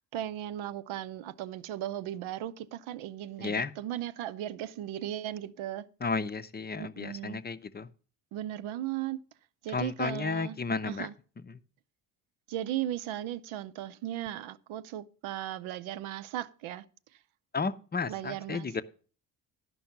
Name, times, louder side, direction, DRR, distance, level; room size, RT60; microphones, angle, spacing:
voice 1, 0.1-5.8 6.8-7.4 8.3-9.2 9.6-10.6 10.8-11.1 12.5-16.8 18.0-18.8, right 12 dB, 75° right, 0.7 m, -37 dB
voice 2, 3.4-3.7 6.0-7.9 9.7-11.1 11.4-11.6 17.5-18.8, left 4 dB, 20° left, 0.6 m, -33 dB
11.5 x 5.3 x 5.8 m
supercardioid pair, 60°, 48 cm